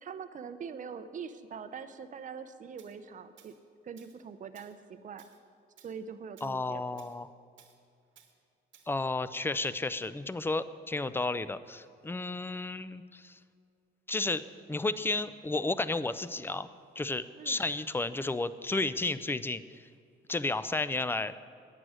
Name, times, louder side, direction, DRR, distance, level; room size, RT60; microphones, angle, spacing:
voice 1, 0.0-3.5 3.8-5.2 5.8-7.0 17.4-17.6, right 6 dB, 40° right, 10 dB, 0.6 m, -43 dB
Tools, 2.8-2.9 3.4-3.6 4.0-4.2 4.5-4.8 5.2-5.4 5.8-6.0 6.4-6.6 7.0-7.2 7.6-7.8 8.2-8.3 8.7-8.9, right 9 dB, 70° right, 1.1 m, -60 dB
voice 2, 6.4-7.3 8.9-13.4 14.1-14.4 14.7-16.7 17.0-19.6 20.3-21.3, left 2 dB, 10° left, 15 dB, 0.4 m, -32 dB
9.3 x 7.7 x 6.3 m, 2.4 s
cardioid pair, 90°, 20 cm